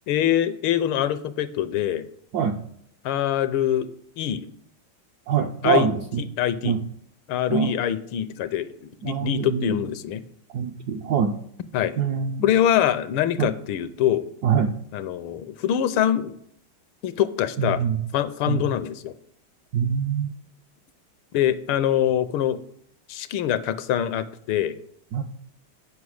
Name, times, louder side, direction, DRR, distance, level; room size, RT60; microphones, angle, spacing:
voice 1, 0.1-2.1 3.0-3.9 4.2-4.5 5.6-5.9 6.4-6.8 7.3-8.7 9.0-10.2 11.7-12.0 12.4-14.3 14.9-16.4 17.0-17.8 18.1-19.1 21.3-22.6 23.1-24.7, left 11 dB, 80° left, 14 dB, 1.5 m, -24 dB
voice 2, 5.3-6.3 6.6-6.8 7.5-7.7 9.0-9.8 10.5-11.4 12.0-12.5 13.4-13.5 14.4-14.8 17.6-18.0 18.5-18.6 19.7-20.3 25.1-25.2, right 7 dB, 75° right, 5 dB, 0.9 m, -24 dB
8.2 x 5.6 x 6.3 m, 0.70 s
omnidirectional pair, 2.3 m